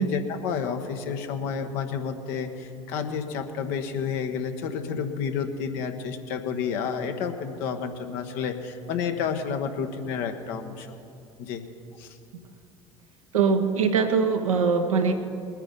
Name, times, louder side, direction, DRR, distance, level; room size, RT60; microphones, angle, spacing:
voice 1, 0.0-10.9 11.4-11.6 12.0-12.2, left 6 dB, 65° left, 5 dB, 1.3 m, -30 dB
voice 2, 13.3-15.1, right 5 dB, 85° right, 4 dB, 1.2 m, -22 dB
21.0 x 9.8 x 5.4 m, 2.7 s
figure-of-eight pair, 65°, 17 cm